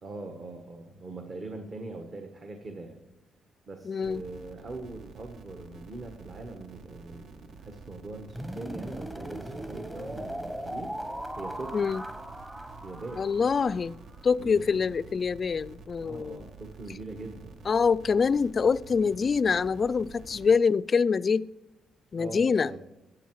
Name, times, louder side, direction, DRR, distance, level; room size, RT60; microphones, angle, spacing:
voice 1, 0.0-3.0 3.7-11.0 11.3-11.9 12.8-13.2 14.4-14.9 16.0-17.6 22.1-22.8, right 2 dB, 45° right, 5 dB, 1.3 m, -42 dB
voice 2, 3.8-4.2 11.7-12.0 13.2-14.0 14.2-16.4 17.7-21.5 22.1-22.7, left 5 dB, 40° left, 19 dB, 0.3 m, -25 dB
sound 1, 4.0-20.6, right 4 dB, 65° right, 1.0 m, -49 dB
sound 2, 8.3-14.3, right 1 dB, 10° right, 0.9 m, -39 dB
13.5 x 8.0 x 4.7 m, 0.99 s
cardioid pair, 90°, 0 cm